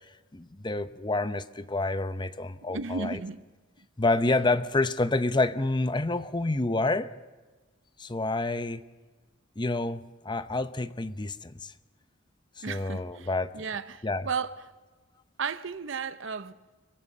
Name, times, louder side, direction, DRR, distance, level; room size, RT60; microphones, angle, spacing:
voice 1, 0.3-3.2 4.0-7.1 8.0-8.8 9.6-11.7 12.6-13.5 14.0-14.3, left 2 dB, 20° left, 0.7 m, -28 dB
voice 2, 2.6-3.4 12.6-13.3 13.5-14.6 15.4-16.5, right 5 dB, 60° right, 0.7 m, -34 dB
25.5 x 24.0 x 6.7 m
head